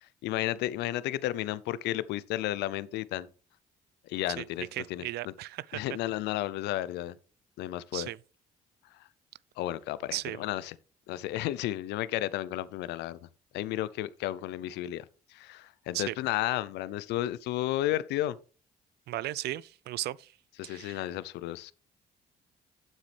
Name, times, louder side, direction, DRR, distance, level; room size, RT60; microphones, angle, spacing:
voice 1, 0.0-3.3 4.0-5.3 5.7-7.2 7.6-8.1 8.9-9.1 9.6-10.8 11.1-13.3 13.5-18.4 20.6-21.7, left 14 dB, 80° left, 0.5 m, -33 dB
voice 2, 4.7-5.8 7.9-8.2 10.1-10.4 15.9-16.2 19.1-20.3 20.6-21.0, right 15 dB, 70° right, 0.4 m, -36 dB
9.0 x 7.6 x 3.3 m
supercardioid pair, 60°, 17 cm